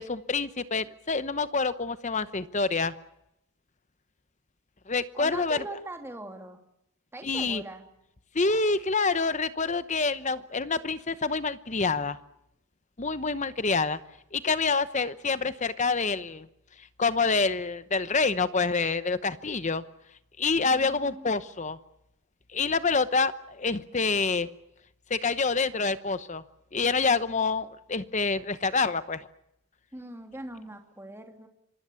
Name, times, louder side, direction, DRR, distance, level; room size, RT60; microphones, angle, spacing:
voice 1, 0.0-2.9 4.9-5.6 7.2-7.6 8.3-12.2 13.0-14.0 14.3-16.5 17.0-19.8 20.4-21.8 22.5-24.5 25.1-26.4 26.7-29.3, left 4 dB, 35° left, 13 dB, 0.9 m, -27 dB
voice 2, 5.1-6.6 7.1-7.9 20.6-21.3 29.9-31.5, right 1 dB, 10° right, 4 dB, 2.8 m, -41 dB
26.5 x 24.0 x 7.1 m, 0.83 s
head